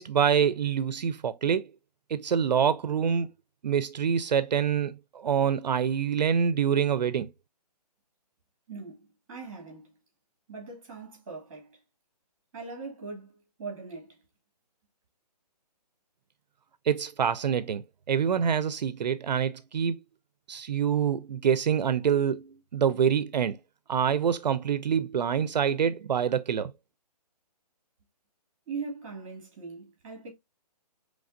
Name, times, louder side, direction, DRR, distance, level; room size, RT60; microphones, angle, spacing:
voice 1, 0.0-1.7 2.1-3.3 3.6-7.3 16.9-20.0 20.5-23.6 23.9-26.7, right 7 dB, 80° right, 0.5 m, -26 dB
voice 2, 8.7-9.0 9.3-10.0 10.5-11.8 12.5-14.2 28.7-30.3, right 4 dB, 20° right, 1.8 m, -40 dB
5.1 x 3.2 x 2.5 m
hypercardioid pair, 175°, 21 cm